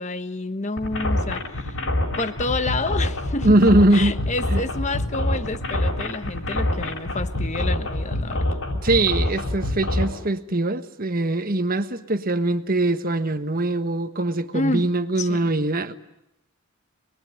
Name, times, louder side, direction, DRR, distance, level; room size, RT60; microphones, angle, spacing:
voice 1, 0.0-1.8 2.2-3.6 3.9-8.5 14.5-14.9 15.2-15.5, left 2 dB, 35° left, 1.2 m, -29 dB
sound 1, 0.8-10.1, left 1 dB, 65° left, 4.5 m, -25 dB
voice 2, 3.4-4.2 4.5-4.6 8.8-15.9, right 1 dB, 40° right, 1.3 m, -21 dB
26.0 x 21.0 x 9.5 m
head